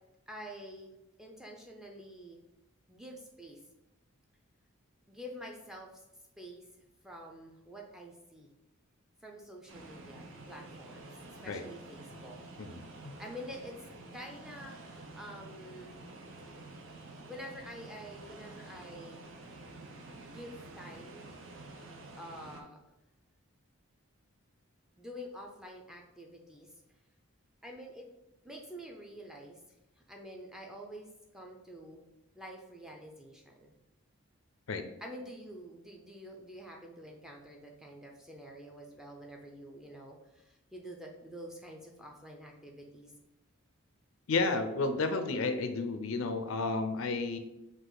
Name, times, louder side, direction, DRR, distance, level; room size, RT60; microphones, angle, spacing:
voice 1, 0.3-0.9 1.2-2.4 2.9-3.6 5.1-6.0 6.4-6.7 7.0-8.5 9.2-11.1 11.4-12.4 13.2-13.8 14.1-16.0 17.2-19.2 20.2-21.3 22.1-22.8 25.0-26.7 27.6-28.1 28.4-29.6 30.1-32.0 32.4-33.7 35.0-43.1, equal, ahead, 0 dB, 0.5 m, -47 dB
sound 1, 9.7-22.6, right 2 dB, 65° right, 0.6 m, -49 dB
voice 2, 12.6-13.2 34.7-34.8 44.3-47.4, left 3 dB, 70° left, 8 dB, 0.5 m, -32 dB
4.9 x 2.5 x 3.9 m, 0.92 s
head